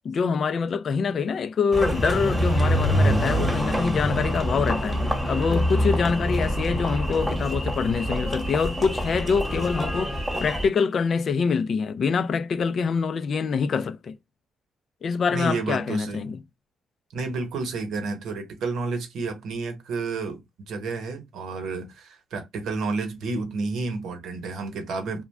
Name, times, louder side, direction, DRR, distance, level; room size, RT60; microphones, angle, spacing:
voice 1, 0.0-5.0 5.3-14.2 15.0-16.4, left 5 dB, 50° left, 0.3 m, -25 dB
Engine, 1.7-10.7, equal, ahead, 1.0 m, -25 dB
voice 2, 15.3-16.4 17.1-25.2, right 3 dB, 75° right, 0.9 m, -30 dB
2.5 x 2.2 x 3.2 m
cardioid pair, 90°, 0 cm